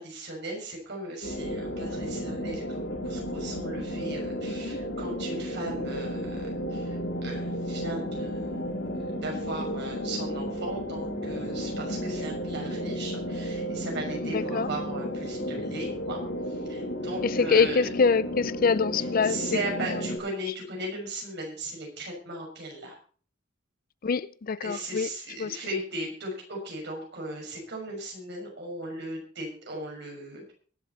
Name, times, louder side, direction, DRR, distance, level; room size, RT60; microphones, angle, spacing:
voice 1, 0.0-16.2 16.5-17.8 18.9-23.0 24.6-30.5, right 1 dB, 60° right, 6.2 m, -37 dB
sound 1, 1.2-20.2, equal, 75° left, 4.6 m, -33 dB
voice 2, 4.5-4.8 14.2-14.7 17.2-19.4 24.0-25.1 25.4-25.6, left 5 dB, 45° left, 0.5 m, -25 dB
23.0 x 7.7 x 4.1 m
head